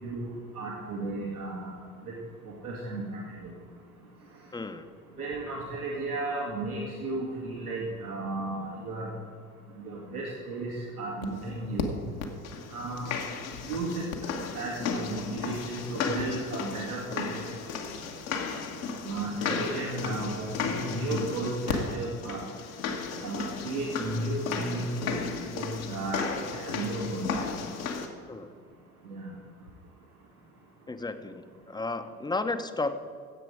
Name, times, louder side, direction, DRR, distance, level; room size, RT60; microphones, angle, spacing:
voice 1, 0.6-1.7 2.6-3.5 5.2-9.1 9.8-11.9 12.7-13.1 13.6-14.1 14.5-17.5 19.0-22.4 23.2-25.1 25.4-26.2 26.7-27.5 29.1-29.3, right 2 dB, 85° right, -5 dB, 2.3 m, -34 dB
voice 2, 4.5-4.9 19.5-19.7 28.3-28.5 30.9-33.0, left 3 dB, 10° left, 9 dB, 0.8 m, -33 dB
sound 1, 11.2-11.3 11.8-11.9 12.2-28.1, left 5 dB, 70° left, 1.5 m, -34 dB
16.5 x 7.7 x 5.0 m, 2.1 s
figure-of-eight pair, 65°, 43 cm